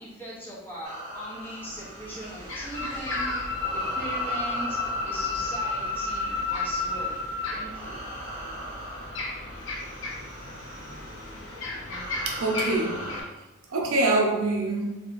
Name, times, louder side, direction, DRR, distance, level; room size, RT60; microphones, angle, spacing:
voice 1, 0.0-7.2 7.5-7.9, equal, 10° left, 0.7 m, -39 dB
sound 1, 0.8-13.2, right 1 dB, 40° right, 0.7 m, -40 dB
sound 2, 1.6-13.2, left 2 dB, 65° left, 0.6 m, -38 dB
sound 3, 2.7-7.6, left 3 dB, 30° left, 0.9 m, -30 dB
voice 2, 12.3-13.1 13.7-14.9, right 2 dB, 85° right, 0.6 m, -25 dB
3.1 x 2.8 x 2.5 m
head